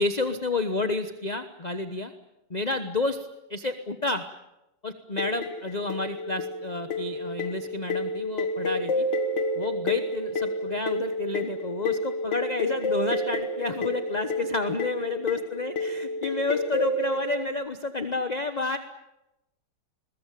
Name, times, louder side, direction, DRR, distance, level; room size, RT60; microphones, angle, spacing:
voice 1, 0.0-2.1 2.5-4.2 4.8-9.1 9.5-18.8, left 3 dB, 30° left, 9 dB, 1.0 m, -30 dB
sound 1, 5.2-17.5, left 1 dB, 75° left, 2.3 m, -30 dB
21.5 x 21.0 x 9.3 m, 0.92 s
omnidirectional pair, 2.0 m